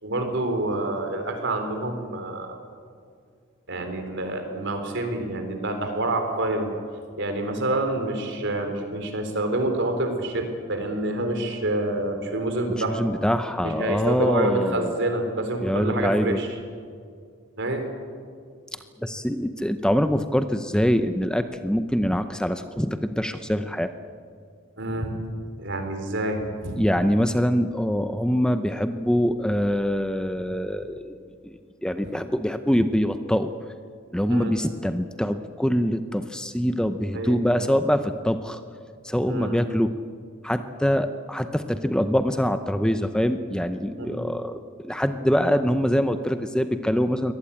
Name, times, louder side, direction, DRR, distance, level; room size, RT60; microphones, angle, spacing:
voice 1, 0.0-2.6 3.7-6.7 7.2-13.0 13.6-16.5 17.6-17.9 24.8-25.1 25.6-26.9 32.0-32.2 34.3-34.6 37.1-37.6 39.3-39.6 44.0-44.2, right 2 dB, 60° right, 6 dB, 3.9 m, -27 dB
voice 2, 12.9-15.0 15.6-16.4 19.0-23.9 26.8-31.1 31.4-33.5 34.1-38.6 39.0-39.9 40.4-47.3, equal, 5° left, 9 dB, 0.7 m, -24 dB
23.5 x 18.5 x 8.7 m, 2.2 s
head